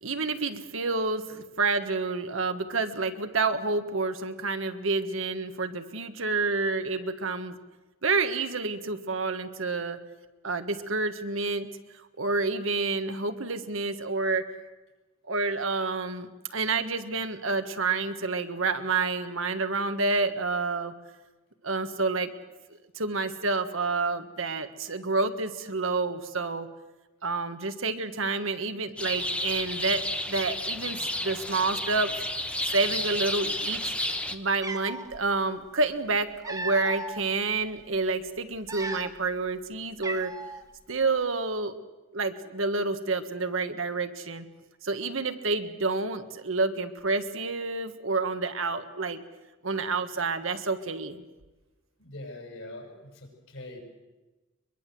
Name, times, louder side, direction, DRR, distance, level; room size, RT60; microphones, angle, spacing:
voice 1, 0.0-7.6 8.0-10.0 10.4-11.7 12.2-14.5 15.3-20.9 21.6-22.3 22.9-26.7 27.2-32.1 32.7-33.9 34.3-40.3 40.9-41.7 42.1-44.4 44.8-49.2 49.6-51.2, right 3 dB, 70° right, 8 dB, 1.6 m, -29 dB
sound 1, 29.0-34.4, left 1 dB, 5° left, 1.1 m, -31 dB
Cat, 34.1-34.2 34.5-35.1 36.0-37.2 37.8-38.0 38.5-39.3 39.6-39.7 40.0-40.6, right 2 dB, 20° right, 1.5 m, -36 dB
voice 2, 52.0-53.8, left 1 dB, 70° left, 3 dB, 6.5 m, -43 dB
22.5 x 22.5 x 7.7 m, 1.1 s
head